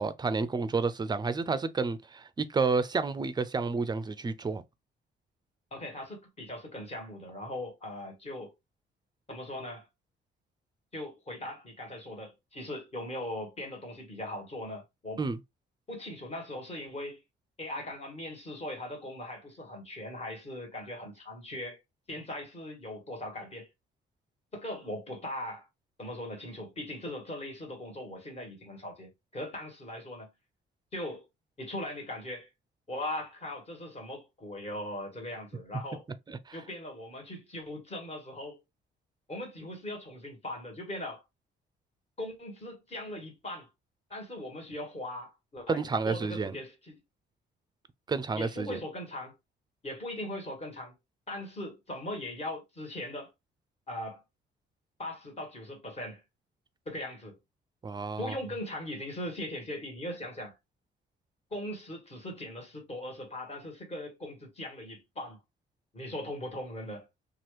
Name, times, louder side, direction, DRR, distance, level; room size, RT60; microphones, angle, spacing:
voice 1, 0.0-4.6 15.2-15.4 36.3-36.6 45.7-46.6 48.1-48.8 57.8-58.4, right 4 dB, 20° right, 0.4 m, -30 dB
voice 2, 5.7-8.5 9.3-9.9 10.9-15.2 15.9-17.2 17.6-21.8 22.1-23.7 24.5-25.7 26.0-30.3 30.9-31.2 31.6-32.5 32.9-36.0 36.5-38.6 39.3-41.2 42.2-43.7 44.1-46.9 48.4-49.3 49.8-50.9 51.3-53.3 53.9-54.2 55.0-56.2 56.8-57.4 58.2-60.5 61.5-65.4 65.9-67.1, left 1 dB, 30° left, 1.5 m, -39 dB
2.9 x 2.4 x 3.2 m
cardioid pair, 90°, 20 cm